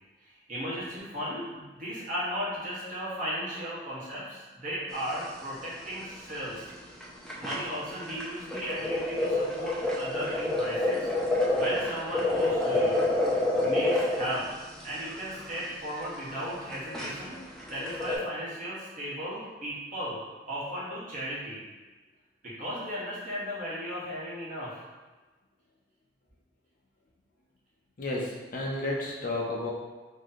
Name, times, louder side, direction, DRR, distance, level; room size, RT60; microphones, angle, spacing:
voice 1, 0.2-6.7 7.4-13.0 13.6-14.5 14.8-17.4 17.7-20.2 20.5-21.6 22.4-24.8, equal, 45° right, -8 dB, 1.3 m, -36 dB
sound 1, 4.9-5.4 5.7-5.8 6.0-6.2 6.7-6.8 7.0-18.2, left 2 dB, 5° left, 0.5 m, -28 dB
voice 2, 28.0-29.7, left 2 dB, 50° left, -2 dB, 0.7 m, -32 dB
3.1 x 2.8 x 3.9 m, 1.3 s
head